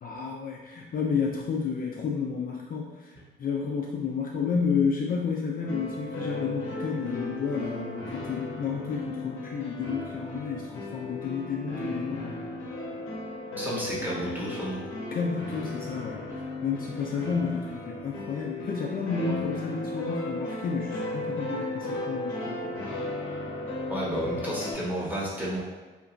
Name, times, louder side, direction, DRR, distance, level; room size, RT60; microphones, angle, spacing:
voice 1, 0.0-12.5 15.1-16.3 16.6-22.8, left 5 dB, 45° left, -2 dB, 0.4 m, -31 dB
sound 1, 5.6-24.7, left 1 dB, 90° left, 0.7 m, -35 dB
voice 2, 13.6-14.9 23.9-25.6, right 1 dB, 10° right, -6 dB, 0.9 m, -31 dB
2.9 x 2.4 x 2.4 m, 1.3 s
cardioid pair, 90°, 20 cm